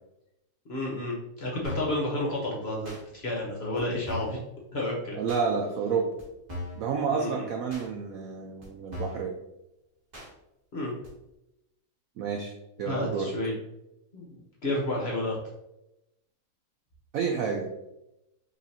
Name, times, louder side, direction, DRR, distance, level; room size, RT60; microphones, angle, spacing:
voice 1, 0.7-4.4 4.7-5.2 7.1-7.5 10.7-10.9 12.8-13.5 14.1-14.3 14.6-15.4, left 1 dB, 45° left, -3 dB, 1.0 m, -31 dB
sound 1, 1.6-2.0 2.8-3.0 3.8-3.9 4.1-4.4 5.3-5.4 6.2-6.3 6.5-6.8 7.7-7.9 8.6-8.7 8.9-9.3 10.1-10.3 11.0-11.1, left 1 dB, 25° right, 1.2 m, -38 dB
voice 2, 5.1-6.1 6.8-9.3 12.2-12.5 12.8-13.3 17.1-17.7, right 5 dB, 85° right, 1 dB, 0.7 m, -29 dB
5.5 x 3.1 x 2.8 m, 0.89 s
omnidirectional pair, 2.0 m